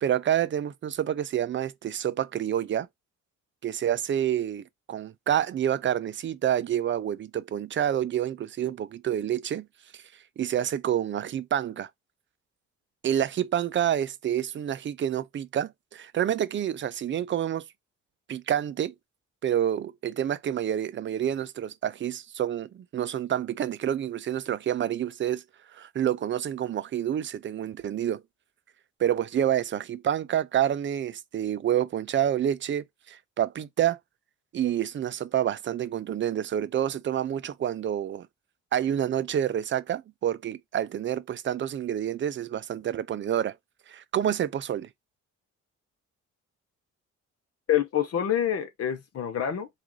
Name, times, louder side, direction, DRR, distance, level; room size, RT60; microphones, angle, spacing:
voice 1, 0.0-2.9 3.6-9.7 9.9-10.0 10.4-11.9 13.0-17.7 18.3-18.9 19.4-25.4 25.7-28.2 29.0-34.0 34.5-38.3 38.7-43.6 43.9-44.9, right 10 dB, 40° right, 0.5 m, -28 dB
voice 2, 47.7-49.7, left 10 dB, 55° left, 0.8 m, -26 dB
3.5 x 2.5 x 3.1 m
cardioid pair, 90°, 30 cm